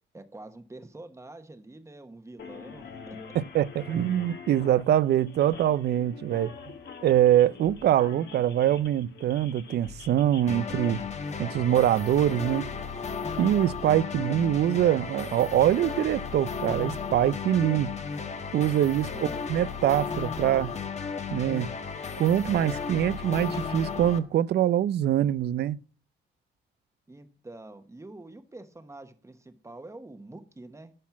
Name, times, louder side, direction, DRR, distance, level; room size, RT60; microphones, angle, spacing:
voice 1, 0.1-3.2 19.0-19.4 27.1-30.9, right 2 dB, 15° right, 1.2 m, -46 dB
sound 1, 2.4-11.0, left 6 dB, 60° left, 1.7 m, -45 dB
voice 2, 3.3-6.5 7.0-11.0 11.4-12.7 13.4-17.9 18.5-20.7 21.3-21.7 22.2-25.8, right 11 dB, 55° right, 0.5 m, -24 dB
sound 2, 10.5-24.2, left 5 dB, 35° left, 1.2 m, -34 dB
12.0 x 4.3 x 7.2 m
cardioid pair, 90°, 20 cm